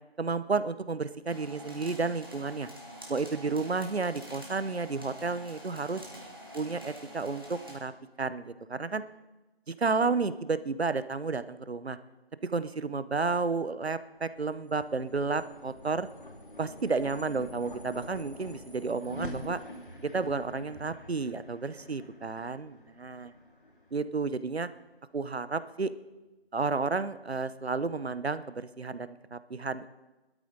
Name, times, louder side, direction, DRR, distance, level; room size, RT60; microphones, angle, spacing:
voice 1, 0.2-2.7 3.1-6.0 6.5-7.9 8.2-9.0 9.7-12.0 12.4-16.1 16.6-19.6 20.0-23.3 23.9-24.7 25.1-25.9 26.5-29.9, right 4 dB, 75° right, 14 dB, 0.9 m, -31 dB
sound 1, 1.3-7.8, equal, 20° right, 1.7 m, -46 dB
sound 2, 14.2-24.7, left 1 dB, 50° left, 2.4 m, -46 dB
18.5 x 12.5 x 3.9 m, 1.1 s
figure-of-eight pair, 180°, 32 cm